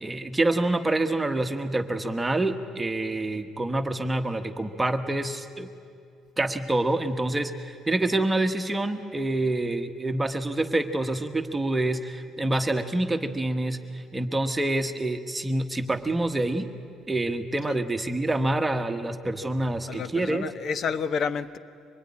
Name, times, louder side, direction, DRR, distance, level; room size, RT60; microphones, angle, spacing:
voice 1, 0.0-5.7 6.4-16.7 17.1-20.4, right 2 dB, 10° right, 7 dB, 1.3 m, -27 dB
voice 2, 19.9-21.6, left 6 dB, 50° left, 13 dB, 1.0 m, -30 dB
24.5 x 21.0 x 9.8 m, 2.4 s
cardioid pair, 125°, 0 cm